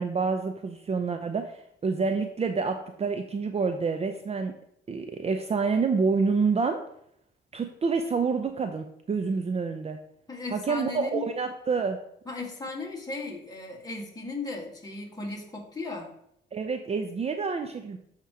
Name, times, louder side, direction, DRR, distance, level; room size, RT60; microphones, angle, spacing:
voice 1, 0.0-4.5 4.9-6.8 7.5-10.0 10.5-12.0 16.5-18.0, right 4 dB, 30° right, 6 dB, 0.5 m, -28 dB
voice 2, 10.3-11.2 12.3-16.1, left 3 dB, 20° left, -1 dB, 1.8 m, -36 dB
8.2 x 2.9 x 4.9 m, 0.74 s
cardioid pair, 90°, 20 cm